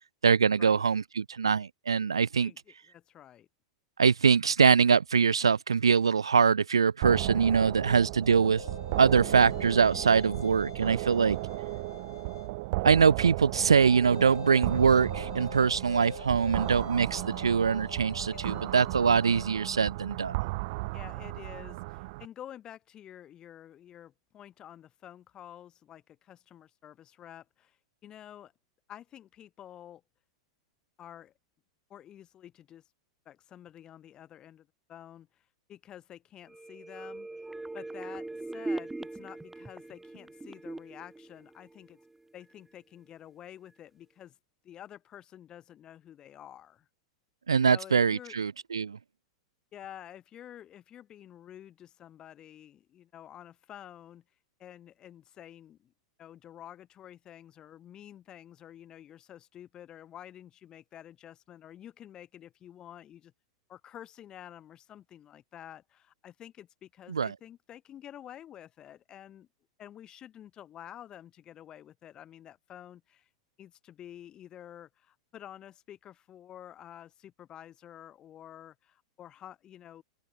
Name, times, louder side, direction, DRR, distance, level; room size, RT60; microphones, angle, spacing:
voice 1, 0.2-2.5 4.0-8.6 9.0-11.4 12.8-20.4 47.5-49.0 67.1-67.3, right 6 dB, 75° right, 0.9 m, -23 dB
voice 2, 2.4-3.5 18.3-18.7 20.9-27.8 28.0-28.5 28.9-30.0 31.0-31.3 31.9-32.8 33.3-35.4 35.7-37.3 37.7-42.0 42.3-44.4 44.6-46.9 47.7-48.4 49.7-54.2 54.6-55.9 56.2-63.3 63.7-69.5 69.8-73.3 73.6-80.0, left 11 dB, 30° left, 5.9 m, -49 dB
sound 1, 7.0-22.3, right 25 dB, 50° right, 2.2 m, -35 dB
sound 2, 8.2-12.6 14.0-19.5, left 7 dB, 70° left, 3.3 m, -45 dB
sound 3, 36.5-42.2 42.5-42.6, right 2 dB, 5° right, 0.8 m, -40 dB
open air
figure-of-eight pair, 95°, 3 cm